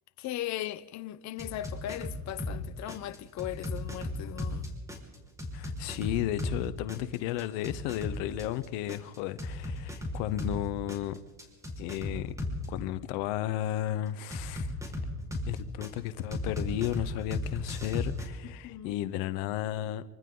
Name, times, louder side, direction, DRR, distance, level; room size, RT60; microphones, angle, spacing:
voice 1, 0.2-4.7 18.4-19.0, left 13 dB, 55° left, 1.0 m, -38 dB
sound 1, 1.4-2.6 2.9-6.6 6.9-10.6 10.9-12.7 14.3-15.9 16.3-18.3, left 1 dB, 10° right, 5.2 m, -35 dB
voice 2, 5.5-11.2 11.8-12.3 12.7-14.9 15.5-20.0, left 13 dB, 80° left, 1.0 m, -33 dB
26.5 x 25.0 x 3.9 m
supercardioid pair, 100°, 33 cm